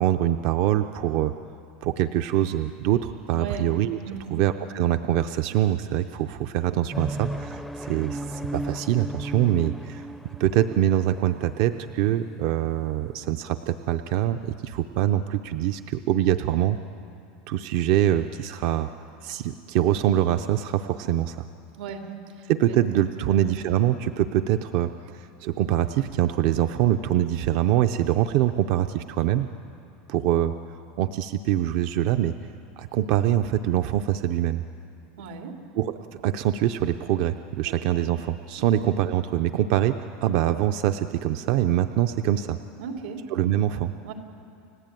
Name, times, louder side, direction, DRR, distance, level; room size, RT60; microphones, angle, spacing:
voice 1, 0.0-1.3 1.8-4.0 4.3-10.1 10.4-16.8 17.5-18.9 19.2-21.5 22.5-29.5 30.1-30.5 31.0-32.3 32.8-34.6 35.8-42.6 43.3-43.9, right 12 dB, 45° right, 9 dB, 0.5 m, -24 dB
voice 2, 3.3-3.7 4.0-4.3 21.8-22.1 22.4-22.8 23.2-23.4 35.2-35.6 37.6-37.7 38.6-38.9 42.8-43.2 44.0-44.1, right 5 dB, 90° right, 3 dB, 2.9 m, -36 dB
sound 1, 6.9-13.2, right 1 dB, ahead, 0.5 m, -36 dB
30.0 x 16.0 x 9.1 m, 2.6 s
supercardioid pair, 175°, 5 cm